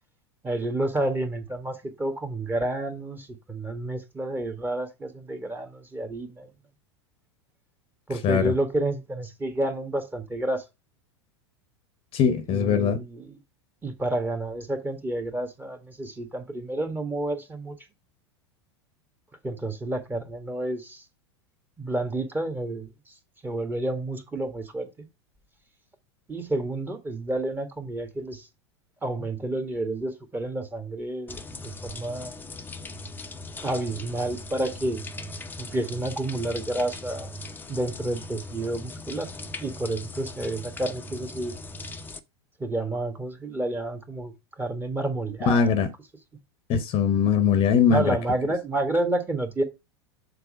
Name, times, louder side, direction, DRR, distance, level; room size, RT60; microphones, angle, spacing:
voice 1, 0.4-6.5 8.1-10.6 12.5-13.4 13.8-17.8 19.4-21.0 21.8-23.1 23.4-25.1 26.3-28.5 29.0-32.4 33.6-35.0 35.6-37.3 37.7-39.3 39.6-41.5 42.6-45.7 47.9-49.6, right 1 dB, 15° right, 1.5 m, -30 dB
voice 2, 12.1-13.0 45.5-45.9 46.7-48.2, left 7 dB, 40° left, 0.9 m, -21 dB
sound 1, 31.3-42.2, left 2 dB, 15° left, 0.8 m, -39 dB
6.9 x 4.0 x 5.0 m
figure-of-eight pair, 90°, 15 cm